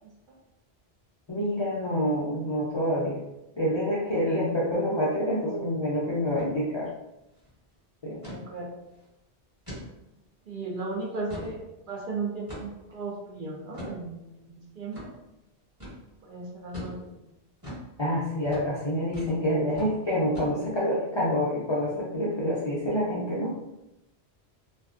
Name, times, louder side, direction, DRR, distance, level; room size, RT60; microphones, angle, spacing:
voice 1, 1.3-3.2 3.6-6.9 8.0-8.2 18.0-23.6, equal, 45° left, -7 dB, 0.3 m, -27 dB
sound 1, 6.3-6.5 6.8-6.9 7.3-7.5 8.2-8.4 8.9-9.0 9.7-9.9 10.4-10.5 11.0-11.6 12.5-12.9 13.7-14.0 14.9-15.1 15.8-16.0 16.7-17.0 17.6-17.9 18.4-18.7 19.1-19.4 19.7-19.9 20.3-20.8, left 1 dB, 20° right, 1.1 m, -40 dB
voice 2, 8.3-8.7 10.5-11.6 11.9-15.1 16.2-17.3, right 3 dB, 60° right, -3 dB, 0.6 m, -36 dB
2.3 x 2.3 x 2.4 m, 0.91 s
omnidirectional pair, 1.1 m